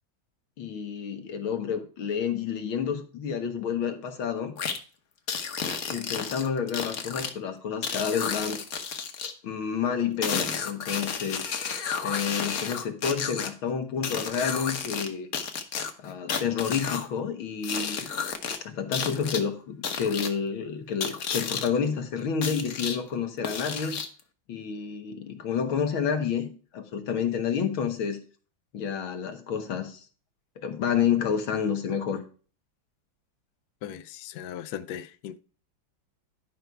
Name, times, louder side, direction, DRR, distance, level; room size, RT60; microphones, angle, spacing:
voice 1, 0.6-4.6 5.9-8.6 9.4-11.4 12.0-15.3 16.0-18.0 18.6-24.0 24.5-28.2 28.7-30.1 30.6-32.2, left 7 dB, 85° left, 2.1 m, -29 dB
sound 1, 4.6-4.8 5.3-7.3 7.8-9.3 10.2-13.5 14.0-15.1 15.3-17.1 17.6-18.6 18.9-19.4 19.8-20.3 21.0-21.7 22.4-23.0 23.4-24.2, left 6 dB, 50° left, 1.4 m, -31 dB
voice 2, 33.8-35.4, left 10 dB, 65° left, 1.0 m, -38 dB
11.0 x 5.4 x 4.6 m
omnidirectional pair, 2.2 m